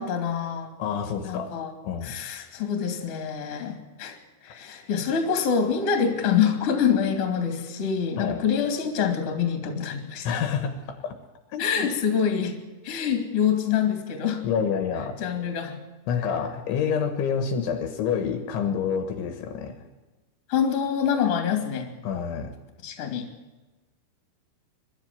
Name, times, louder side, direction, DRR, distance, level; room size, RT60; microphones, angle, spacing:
voice 1, 0.0-0.7 1.2-1.7 2.0-4.2 4.4-10.3 11.6-14.4 15.2-15.8 20.5-21.9 22.8-23.3, left 7 dB, 35° left, 6 dB, 2.9 m, -26 dB
voice 2, 0.8-1.6 1.8-2.1 8.2-8.4 10.3-11.1 11.5-11.9 14.4-15.2 16.1-19.8 22.0-22.5, left 7 dB, 70° left, 8 dB, 3.6 m, -28 dB
23.0 x 13.0 x 9.3 m, 1.2 s
omnidirectional pair, 6.0 m